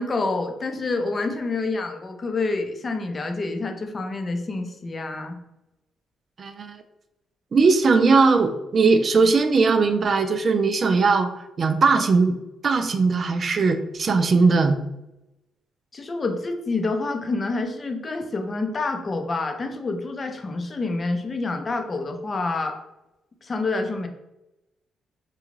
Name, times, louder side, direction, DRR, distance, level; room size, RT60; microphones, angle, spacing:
voice 1, 0.0-5.4 15.9-22.8 23.4-24.1, left 3 dB, 35° left, 5 dB, 0.6 m, -27 dB
voice 2, 6.4-6.8 7.5-11.3 11.6-12.4 12.6-14.8, right 4 dB, 45° right, 8 dB, 0.3 m, -19 dB
3.8 x 2.3 x 3.1 m, 0.94 s
cardioid pair, 90°, 0 cm